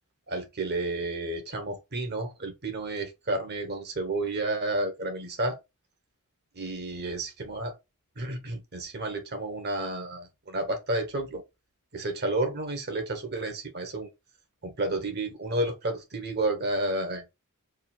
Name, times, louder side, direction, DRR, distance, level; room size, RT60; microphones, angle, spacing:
voice 1, 0.3-5.6 6.5-7.7 8.2-11.4 11.9-14.1 14.6-17.3, right 2 dB, 45° right, 1.2 m, -31 dB
3.7 x 2.6 x 4.3 m
head